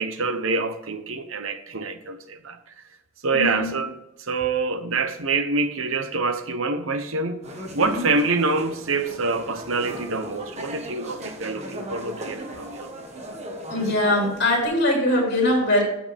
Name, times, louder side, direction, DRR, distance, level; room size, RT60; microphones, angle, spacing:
voice 1, 0.0-2.6 3.2-12.9, right 3 dB, 75° right, 1.0 m, -26 dB
voice 2, 3.3-3.7 7.8-8.0 13.7-15.8, left 1 dB, 50° left, 4.1 m, -22 dB
sound 1, 7.4-14.6, right 1 dB, 30° right, 1.5 m, -37 dB
13.5 x 7.8 x 3.5 m
head